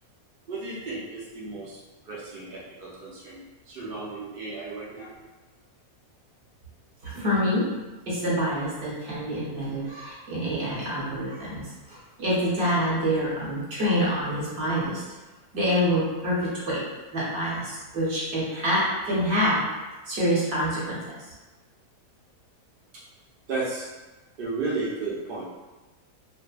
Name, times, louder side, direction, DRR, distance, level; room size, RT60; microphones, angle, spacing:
voice 1, 0.5-1.8 2.1-3.4 3.7-5.1 23.5-23.9 24.4-25.4, right 3 dB, 70° right, -6 dB, 0.5 m, -33 dB
voice 2, 7.0-7.7 8.1-15.0 15.5-16.8 17.1-19.7 20.1-21.2, equal, 45° right, -8 dB, 1.1 m, -26 dB
2.6 x 2.4 x 2.3 m, 1.2 s
omnidirectional pair, 1.6 m